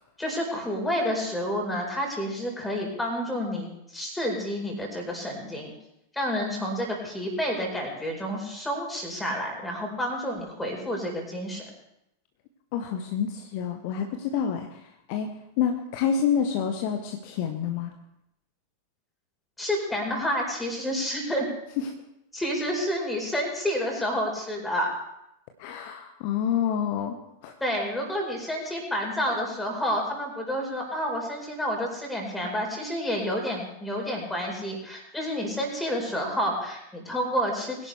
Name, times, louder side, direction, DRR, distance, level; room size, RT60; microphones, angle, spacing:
voice 1, 0.2-5.7 6.1-11.7 19.6-21.5 22.3-24.9 27.6-37.9, equal, 5° left, 0 dB, 4.5 m, -29 dB
voice 2, 12.7-15.3 15.6-17.9 21.8-21.9 25.6-27.2 27.4-27.5, left 8 dB, 45° left, 5 dB, 1.1 m, -28 dB
21.5 x 11.0 x 3.4 m, 0.83 s
figure-of-eight pair, 90°, 0 cm